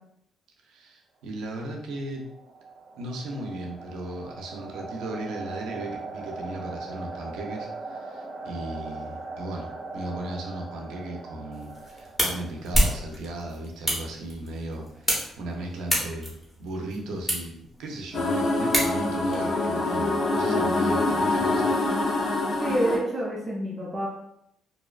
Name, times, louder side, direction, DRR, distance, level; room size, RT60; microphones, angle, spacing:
voice 1, 0.6-2.3 2.9-21.7, right 2 dB, 85° right, 1 dB, 0.5 m, -36 dB
sound 1, 1.9-12.8, right 3 dB, 55° right, 1.1 m, -40 dB
sound 2, 11.5-19.3, equal, ahead, 0.9 m, -30 dB
sound 3, 18.1-23.0, left 2 dB, 65° left, 0.5 m, -25 dB
voice 2, 22.6-24.1, right 1 dB, 25° right, -6 dB, 0.5 m, -27 dB
2.6 x 2.1 x 2.3 m, 0.77 s
cardioid pair, 90°, 0 cm